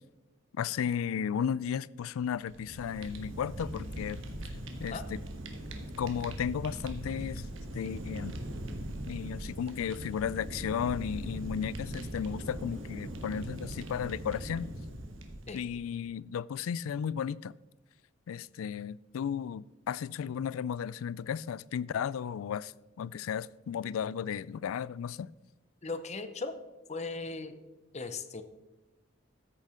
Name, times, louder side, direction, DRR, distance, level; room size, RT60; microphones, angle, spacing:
voice 1, 0.5-4.2 4.8-5.2 6.0-7.5 7.7-8.3 9.1-14.7 15.5-17.5 18.3-25.3, left 8 dB, 85° left, 0.3 m, -34 dB
Fire, 2.3-15.9, right 1 dB, 70° right, 1.4 m, -40 dB
voice 2, 25.8-26.6 26.9-27.6 27.9-28.4, left 3 dB, 35° left, 0.7 m, -37 dB
14.0 x 6.6 x 5.0 m
head